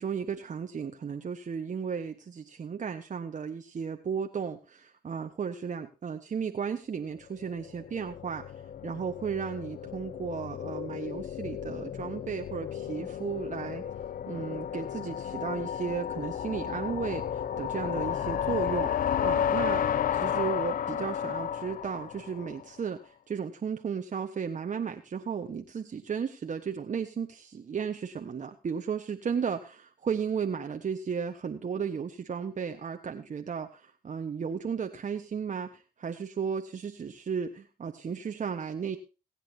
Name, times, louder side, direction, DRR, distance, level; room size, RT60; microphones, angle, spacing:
voice 1, 0.0-8.4 8.8-13.8 14.3-18.9 19.2-23.0 23.3-39.0, right 6 dB, 45° right, 5 dB, 1.3 m, -34 dB
sound 1, 7.4-22.7, left 9 dB, 50° left, 0.6 m, -33 dB
22.0 x 9.0 x 2.8 m, 0.32 s
supercardioid pair, 60°, 18 cm